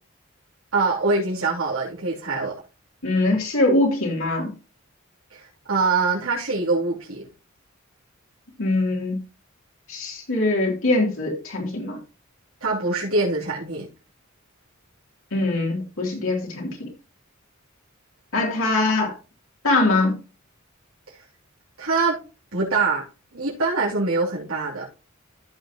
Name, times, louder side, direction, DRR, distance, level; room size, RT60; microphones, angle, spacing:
voice 1, 0.7-2.6 5.3-7.3 12.6-13.9 21.8-22.2 22.5-23.0 23.3-24.9, right 3 dB, 85° right, -8 dB, 3.2 m, -24 dB
voice 2, 3.0-4.5 8.6-9.2 9.9-12.0 15.3-16.9 18.3-19.1 19.6-20.2, left 2 dB, 70° left, -1 dB, 3.2 m, -22 dB
14.5 x 6.4 x 3.0 m, 0.31 s
head